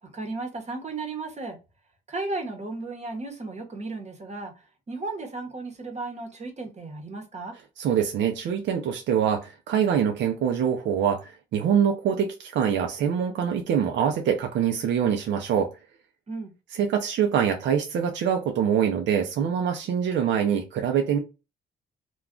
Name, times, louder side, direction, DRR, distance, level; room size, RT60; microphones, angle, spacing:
voice 1, 0.0-1.6 2.1-7.6 16.3-16.5, right 3 dB, 35° right, 0.9 m, -35 dB
voice 2, 7.8-15.7 16.7-21.2, right 8 dB, 65° right, 0.5 m, -24 dB
2.3 x 2.2 x 3.6 m
cardioid pair, 90°, 20 cm